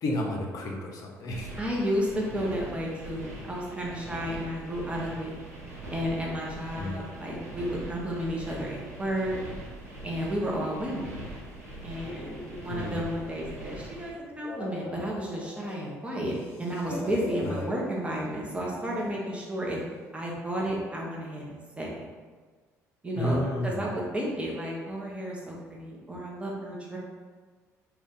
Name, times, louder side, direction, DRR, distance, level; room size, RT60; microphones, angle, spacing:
voice 1, 0.0-1.5 6.8-7.0 12.7-13.0 17.4-17.5 23.2-23.8, left 1 dB, 45° left, -1 dB, 0.6 m, -31 dB
sound 1, 1.3-14.1, right 1 dB, 80° right, 0.6 m, -42 dB
voice 2, 1.5-5.3 5.9-9.4 10.0-11.2 11.8-19.8 20.1-22.1 23.0-27.0, equal, 15° right, -3 dB, 0.8 m, -32 dB
sound 2, 12.0-13.8 14.2-15.9 16.2-17.7 18.5-19.2, left 1 dB, 20° left, 0.9 m, -41 dB
2.5 x 2.2 x 3.8 m, 1.5 s
figure-of-eight pair, 50°, 9 cm